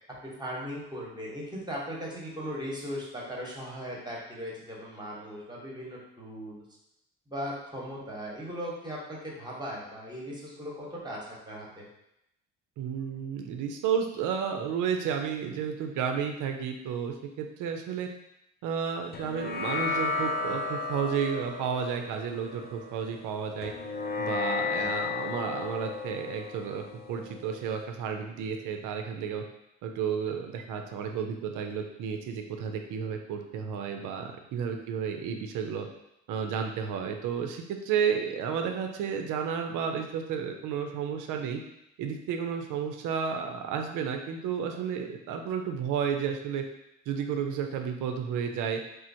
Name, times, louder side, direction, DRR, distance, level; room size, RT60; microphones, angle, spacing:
voice 1, 0.2-6.6 7.3-11.9 24.7-24.9 34.2-34.3, equal, 10° right, -4 dB, 1.0 m, -38 dB
voice 2, 12.8-18.1 18.6-23.7 24.2-29.4 29.8-35.9 36.3-41.6 42.0-46.6 47.1-48.8, right 7 dB, 60° right, 4 dB, 0.5 m, -32 dB
sound 1, 19.1-27.8, left 4 dB, 30° left, 0.4 m, -34 dB
3.0 x 2.0 x 2.6 m, 0.83 s
hypercardioid pair, 50°, 35 cm